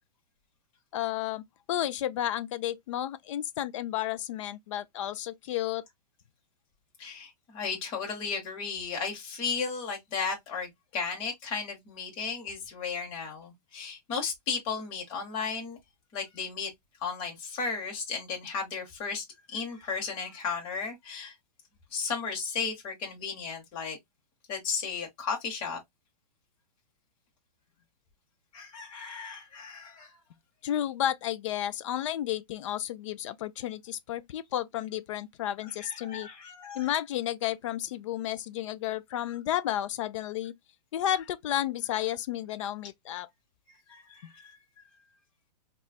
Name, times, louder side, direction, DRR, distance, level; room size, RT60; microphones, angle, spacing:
voice 1, 0.9-5.8 30.6-36.3 36.7-40.5 40.9-43.3 44.2-44.3, left 12 dB, 45° left, 0.4 m, -32 dB
voice 2, 7.0-15.8 16.1-16.7 17.0-21.3 21.9-24.0 24.5-25.8 28.5-30.2 35.6-36.9 43.9-44.6, left 5 dB, 25° left, 1.1 m, -35 dB
3.9 x 2.3 x 2.3 m
hypercardioid pair, 155°, 21 cm